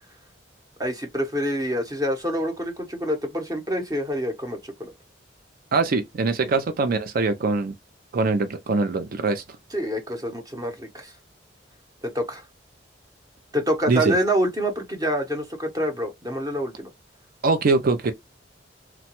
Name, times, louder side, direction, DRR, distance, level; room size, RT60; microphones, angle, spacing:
voice 1, 0.8-4.9 6.4-6.5 9.7-11.1 12.0-12.4 13.5-16.9, equal, 20° right, 0.8 m, -27 dB
voice 2, 5.7-7.7 8.1-9.4 13.9-14.2 17.4-18.1, right 3 dB, 50° right, 0.4 m, -22 dB
2.9 x 2.2 x 2.9 m
head